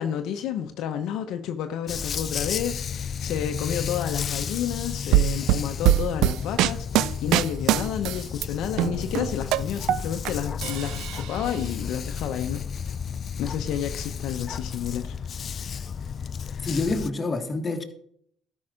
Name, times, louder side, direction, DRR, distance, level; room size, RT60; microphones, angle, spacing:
voice 1, 0.0-12.9 13.4-15.7, left 9 dB, 75° left, 0.7 m, -31 dB
Dog, 1.9-17.1, left 7 dB, 50° left, 0.4 m, -33 dB
sound 1, 5.1-8.5 8.8-10.3 10.6-11.5, right 14 dB, 80° right, 0.3 m, -23 dB
sound 2, 7.9-14.1, equal, 25° right, 3.6 m, -46 dB
voice 2, 16.6-17.8, left 3 dB, 25° left, 1.7 m, -27 dB
13.0 x 5.4 x 5.0 m
supercardioid pair, 80°, 0 cm